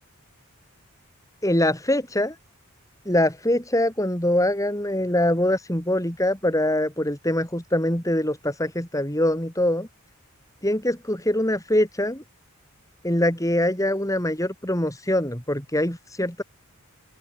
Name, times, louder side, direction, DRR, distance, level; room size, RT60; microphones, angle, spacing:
voice 1, 1.4-2.4 3.1-9.9 10.6-12.2 13.0-16.4, left 1 dB, 15° left, 5.3 m, -23 dB
open air
head